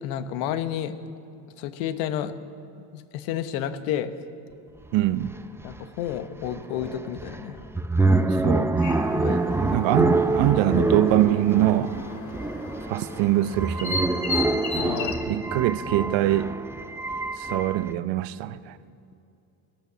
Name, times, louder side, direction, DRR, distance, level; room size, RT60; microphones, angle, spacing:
voice 1, 0.0-0.9 1.6-2.3 2.8-4.1 5.6-7.6 9.1-9.8 14.8-15.3, left 10 dB, 85° left, 1.1 m, -31 dB
sound 1, 4.8-4.9 5.2-17.9, right 2 dB, 5° right, 0.5 m, -26 dB
voice 2, 4.9-5.3 8.4-8.7 9.6-12.0 12.8-14.2 15.3-16.6 17.3-18.8, right 14 dB, 70° right, 0.8 m, -23 dB
sound 2, 8.8-15.2, left 3 dB, 40° left, 2.1 m, -35 dB
18.0 x 11.5 x 6.1 m
supercardioid pair, 95°, 46 cm